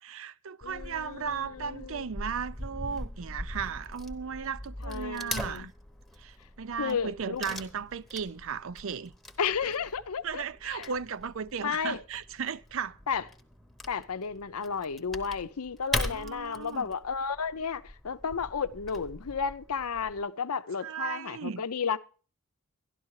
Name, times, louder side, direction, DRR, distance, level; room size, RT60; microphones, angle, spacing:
voice 1, 0.0-5.7 6.2-9.1 10.2-13.0 16.1-16.9 20.8-21.6, right 6 dB, 60° right, 0.5 m, -36 dB
voice 2, 0.6-2.1 4.8-5.7 6.8-7.6 9.4-10.4 10.7-10.9 11.6-12.0 13.1-13.2 13.9-22.0, left 6 dB, 85° left, 0.7 m, -33 dB
Wood / Tearing, 0.6-20.2, left 1 dB, ahead, 0.9 m, -41 dB
12.5 x 11.5 x 4.8 m
head